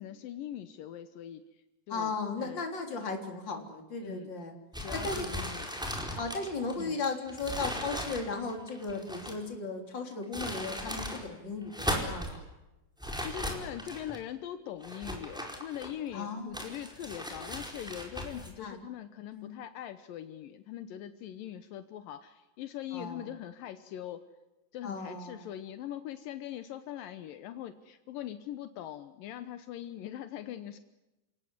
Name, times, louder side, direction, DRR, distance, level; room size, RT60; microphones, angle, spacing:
voice 1, 0.0-1.4 1.9-2.1 2.4-2.7 4.0-4.3 4.8-5.7 6.8-7.0 13.2-24.2 24.7-30.8, left 11 dB, 75° left, 10 dB, 2.7 m, -42 dB
voice 2, 1.9-4.5 4.9-5.3 6.2-12.4 16.1-16.7 18.6-18.8 19.3-19.5 22.9-23.3 24.8-25.5, left 4 dB, 30° left, 4 dB, 4.0 m, -36 dB
sound 1, 4.7-9.5 10.1-11.2 11.6-12.4 13.0-14.2 14.8-16.1 16.5-18.5, equal, ahead, 4.4 m, -37 dB
28.5 x 18.5 x 9.7 m, 1.0 s
omnidirectional pair, 4.0 m